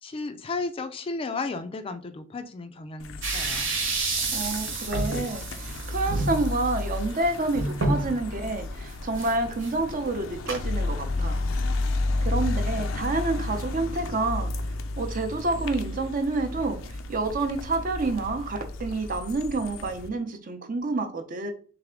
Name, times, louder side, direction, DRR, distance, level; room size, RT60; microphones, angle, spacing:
voice 1, 0.0-3.7, left 3 dB, 30° left, 0.3 m, -34 dB
sound 1, 3.0-20.1, left 2 dB, 90° left, 0.5 m, -32 dB
sound 2, 3.2-8.2 8.6-8.7 9.2-9.3 9.6-9.7 10.5-10.6, right 2 dB, 80° right, 1.2 m, -29 dB
voice 2, 4.3-11.4 12.2-14.5 15.0-21.5, right 2 dB, 45° right, 0.6 m, -28 dB
3.4 x 3.3 x 3.7 m
head